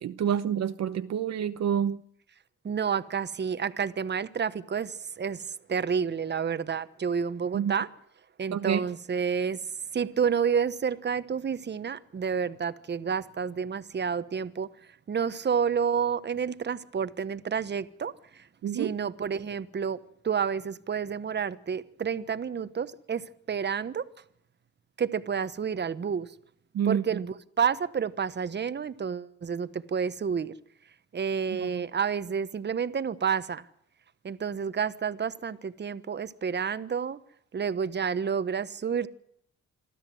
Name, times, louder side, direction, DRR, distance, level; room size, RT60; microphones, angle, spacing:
voice 1, 0.0-2.0 7.5-7.7 8.5-8.8 18.6-18.9 26.7-27.2 31.6-31.8, right 8 dB, 60° right, 0.9 m, -28 dB
voice 2, 2.6-7.9 8.4-9.6 9.9-14.7 15.1-18.5 18.7-20.0 20.2-24.0 25.0-26.3 26.9-30.5 31.1-33.7 34.2-37.2 37.5-39.1, right 6 dB, 35° right, 1.2 m, -30 dB
26.0 x 13.0 x 7.9 m
cardioid pair, 90°, 30 cm